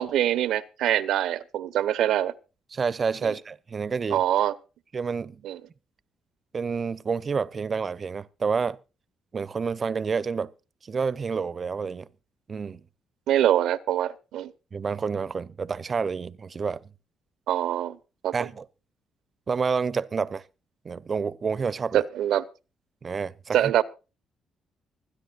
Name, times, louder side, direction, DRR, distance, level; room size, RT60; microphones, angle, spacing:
voice 1, 0.0-2.3 3.2-3.3 4.1-4.5 5.4-5.6 13.3-14.5 17.5-18.0 18.2-18.3 21.9-22.4 23.5-23.8, right 11 dB, 80° right, 0.9 m, -24 dB
voice 2, 2.7-4.2 4.9-5.4 6.5-8.8 9.3-10.5 10.8-12.1 12.5-12.8 14.7-16.8 18.3-18.6 19.5-20.4 20.8-22.0 23.0-23.7, right 5 dB, 40° right, 0.7 m, -29 dB
25.0 x 10.0 x 2.5 m
cardioid pair, 90°, 0 cm